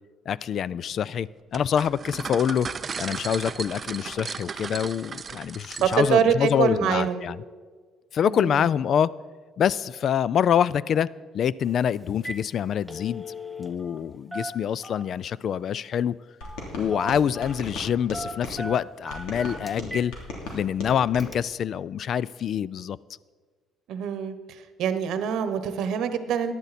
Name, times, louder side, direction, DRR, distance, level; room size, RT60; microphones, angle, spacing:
voice 1, 0.3-2.7 3.0-7.4 8.1-9.1 9.6-11.1 11.3-13.2 13.6-16.2 16.8-20.1 20.5-23.0, left 8 dB, 50° left, 21 dB, 0.3 m, -25 dB
sound 1, 1.5-6.2, right 5 dB, 30° right, 0.5 m, -36 dB
voice 2, 5.8-7.2 8.2-8.6 23.9-24.3 24.8-26.5, right 8 dB, 70° right, 10 dB, 1.0 m, -24 dB
Telephone, 11.6-11.8 12.1-12.4 12.7-14.0 14.3-15.3 16.4-16.7 16.9-17.6 18.1-20.1 20.5-20.6 21.2-21.3, equal, 5° left, 0.7 m, -38 dB
sound 2, 16.4-18.6 19.1-21.3, left 2 dB, 80° left, 3.1 m, -37 dB
15.0 x 10.5 x 4.2 m, 1.5 s
cardioid pair, 130°, 0 cm